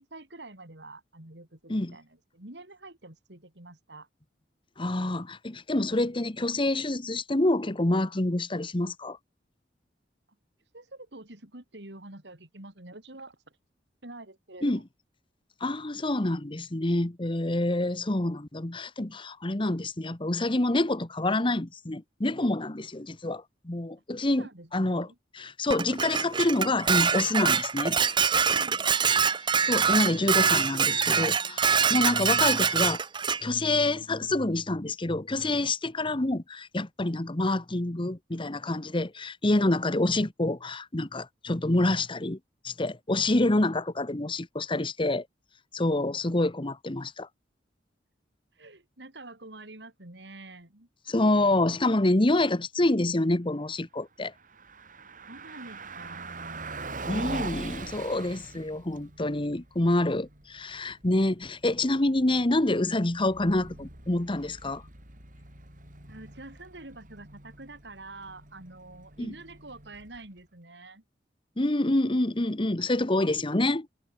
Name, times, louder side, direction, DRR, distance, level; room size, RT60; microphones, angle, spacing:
voice 1, 0.0-4.1 10.7-13.4 14.0-14.8 24.2-25.2 28.5-28.8 48.5-50.9 55.3-56.3 66.1-71.0, right 2 dB, 75° right, 4.3 m, -47 dB
voice 2, 4.8-9.2 14.6-14.8 15.6-25.1 25.3-28.0 29.6-33.0 33.4-42.4 42.6-45.3 45.7-47.3 51.1-54.3 57.0-64.8 69.2-69.3 71.6-73.9, left 2 dB, 30° left, 1.2 m, -27 dB
Dishes pots and pans, 25.7-33.4, right 6 dB, 25° right, 0.8 m, -24 dB
Car passing by, 54.3-70.4, right 3 dB, 50° right, 7.1 m, -43 dB
head